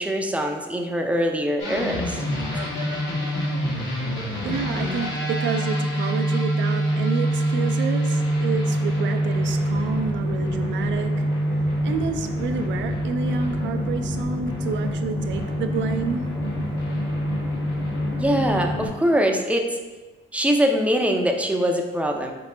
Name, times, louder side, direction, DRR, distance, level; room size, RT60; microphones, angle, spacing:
voice 1, 0.0-2.2 18.2-19.8 20.3-22.3, equal, 5° right, 3 dB, 0.4 m, -23 dB
sound 1, 1.6-18.9, equal, 65° left, 1.3 m, -25 dB
voice 2, 4.4-11.2 11.5-16.3, right 6 dB, 70° right, 8 dB, 0.4 m, -29 dB
4.0 x 3.0 x 3.3 m, 1.2 s
cardioid pair, 90°, 20 cm